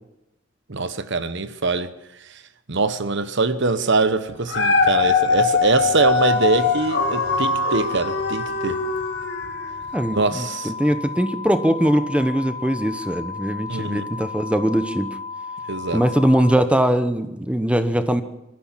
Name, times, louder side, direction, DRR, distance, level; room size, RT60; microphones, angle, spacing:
voice 1, 0.7-1.9 2.7-8.8 10.1-10.7 13.7-14.1 15.7-16.0, right 3 dB, 55° right, 1.1 m, -23 dB
Dog, 4.3-9.6 10.2-10.3, left 4 dB, 55° left, 2.2 m, -22 dB
sound 1, 6.2-16.6, left 4 dB, 70° right, 3.1 m, -34 dB
voice 2, 9.9-15.2 15.9-18.2, equal, 5° right, 0.9 m, -21 dB
24.5 x 14.5 x 7.4 m
head